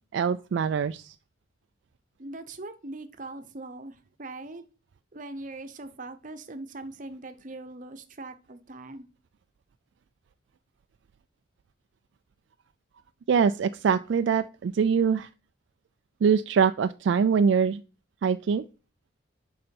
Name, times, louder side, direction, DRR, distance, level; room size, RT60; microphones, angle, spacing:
voice 1, 0.1-1.1 13.3-15.3 16.2-17.8 18.2-18.6, right 6 dB, 65° right, 11 dB, 0.3 m, -23 dB
voice 2, 2.2-4.6 5.1-9.1, right 2 dB, 40° right, 9 dB, 0.8 m, -41 dB
6.8 x 5.6 x 5.2 m, 0.35 s
head